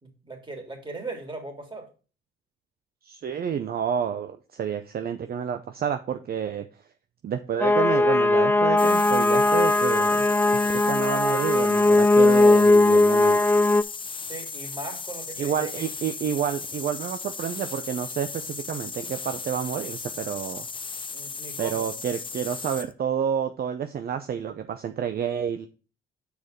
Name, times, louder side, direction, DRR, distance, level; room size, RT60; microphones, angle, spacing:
voice 1, 0.0-1.9 14.2-15.8 21.1-21.9, right 2 dB, 25° right, 3 dB, 3.1 m, -38 dB
voice 2, 3.0-6.7 7.2-10.3 10.9-13.4 15.4-20.7 21.6-25.7, right 8 dB, 50° right, 8 dB, 0.7 m, -29 dB
sound 1, 7.6-13.8, left 2 dB, 10° left, 0.4 m, -19 dB
sound 2, 8.8-22.9, left 4 dB, 25° left, 0.8 m, -36 dB
6.6 x 4.7 x 5.2 m, 0.34 s
supercardioid pair, 70°, 19 cm